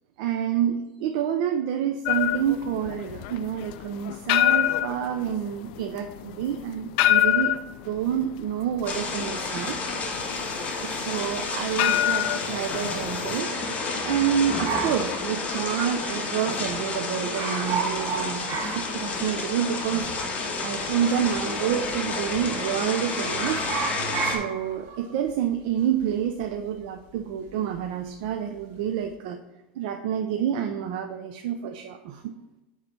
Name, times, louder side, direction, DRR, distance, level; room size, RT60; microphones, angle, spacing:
voice 1, 0.2-9.8 10.8-13.5 14.0-20.1 20.6-23.6 24.2-29.4 29.8-32.3, right 9 dB, 65° right, 4 dB, 0.7 m, -28 dB
sound 1, 2.0-13.4, left 13 dB, 60° left, 0.4 m, -26 dB
sound 2, 8.9-24.4, left 3 dB, 30° left, 1.4 m, -30 dB
sound 3, 14.6-16.1 16.4-16.5 16.7-17.0 17.3-19.5 19.8-19.9 20.7-21.4 21.7-22.0 22.3-22.9 23.2-27.9 28.1-28.6, right 6 dB, 50° right, 1.6 m, -33 dB
8.8 x 3.2 x 5.7 m, 0.95 s
supercardioid pair, 120°, 5 cm